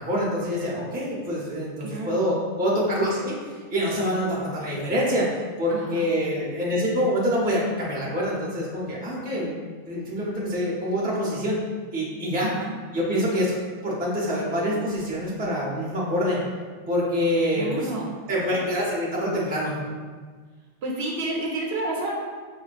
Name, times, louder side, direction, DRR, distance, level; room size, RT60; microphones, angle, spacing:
voice 1, 0.0-9.6 9.9-11.6 11.9-12.5 12.9-13.6 13.8-16.4 16.9-17.9 18.3-19.7, equal, 10° right, -5 dB, 0.5 m, -26 dB
voice 2, 1.8-2.3 5.7-6.1 12.4-12.7 17.5-18.2 20.8-22.1, right 2 dB, 65° right, -2 dB, 0.8 m, -30 dB
5.0 x 2.3 x 2.4 m, 1.5 s
omnidirectional pair, 1.2 m